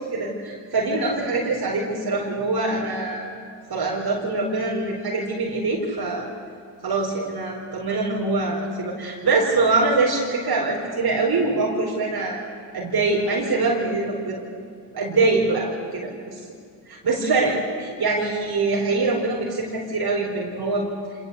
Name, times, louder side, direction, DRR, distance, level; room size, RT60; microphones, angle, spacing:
voice 1, 0.0-3.3 3.7-6.3 6.8-12.4 12.7-14.4 14.9-16.4 16.9-20.9, right 3 dB, 50° right, -2 dB, 4.5 m, -24 dB
26.0 x 19.0 x 8.3 m, 2.2 s
supercardioid pair, 55°, 46 cm